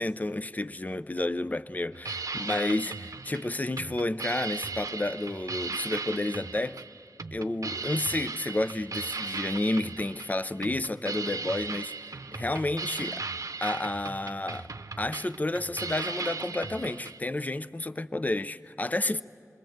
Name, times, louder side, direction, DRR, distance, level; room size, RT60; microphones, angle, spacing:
voice 1, 0.0-6.8 7.3-11.9 12.4-13.2 13.6-14.7 15.0-19.2, left 2 dB, 30° left, 0.6 m, -31 dB
sound 1, 1.9-17.2, right 4 dB, 70° right, 0.7 m, -37 dB
27.5 x 21.5 x 7.9 m
wide cardioid pair, 60°, 6 cm